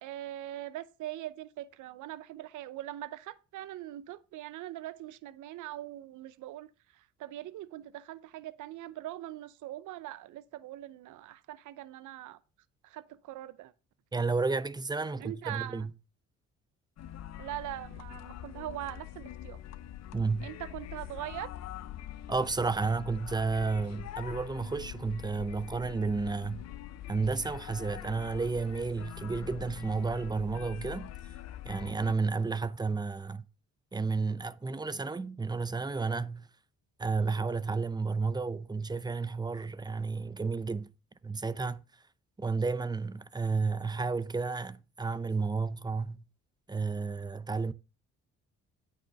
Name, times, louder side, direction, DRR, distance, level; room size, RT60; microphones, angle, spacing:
voice 1, 0.0-12.4 12.8-13.7 15.2-15.9 17.4-19.6 20.4-21.5, right 14 dB, 80° right, 0.7 m, -42 dB
voice 2, 14.1-15.9 20.1-20.5 22.3-26.7 27.1-31.1 31.6-33.4 33.9-36.5 37.0-40.9 41.2-41.9 42.4-46.2 46.7-47.7, right 4 dB, 15° right, 0.5 m, -32 dB
sound 1, 17.0-32.1, left 12 dB, 60° left, 0.6 m, -44 dB
9.0 x 5.0 x 5.2 m
cardioid pair, 90°, 30 cm